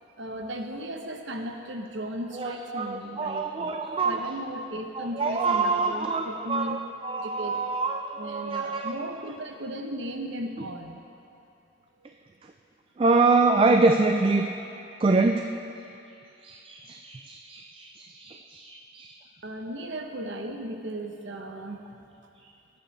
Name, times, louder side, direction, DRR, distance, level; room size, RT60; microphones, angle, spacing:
voice 1, 0.2-6.8 7.2-7.6 8.2-11.0 19.4-21.8, right 1 dB, 75° right, 4 dB, 0.9 m, -36 dB
voice 2, 2.3-4.3 5.0-9.1 13.0-14.5 15.0-15.5 16.4-19.2, right 3 dB, 30° right, 5 dB, 0.3 m, -25 dB
21.5 x 8.2 x 3.3 m, 2.7 s
head